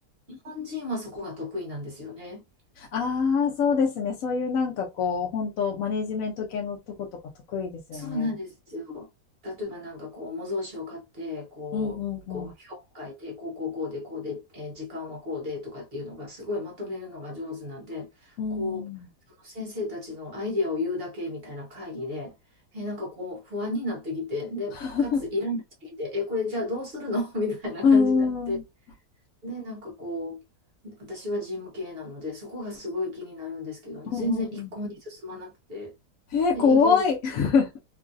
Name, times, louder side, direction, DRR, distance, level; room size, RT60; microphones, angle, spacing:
voice 1, 0.3-2.4 7.9-9.1 9.4-12.0 12.3-18.9 19.4-22.3 22.7-28.6 29.4-30.4 30.8-35.9 36.5-37.0, left 2 dB, 45° right, 0.9 m, -33 dB
voice 2, 2.8-7.1 7.5-8.3 11.7-12.5 18.4-19.1 24.7-25.2 27.8-28.6 34.1-34.7 36.3-37.8, left 5 dB, 65° left, 0.9 m, -25 dB
3.0 x 2.5 x 2.4 m
omnidirectional pair, 1.7 m